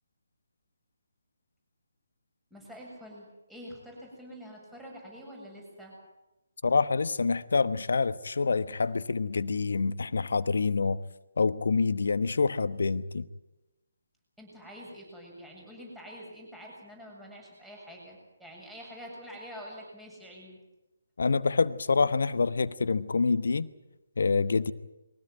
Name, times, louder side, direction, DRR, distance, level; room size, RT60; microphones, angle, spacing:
voice 1, 2.5-5.9 14.4-20.6, equal, 5° right, 7.3 m, -46 dB
voice 2, 6.6-11.0 11.4-13.2 21.2-23.7 24.2-24.7, left 4 dB, 65° left, 1.1 m, -26 dB
23.0 x 16.5 x 9.2 m
figure-of-eight pair, 145°, 0 cm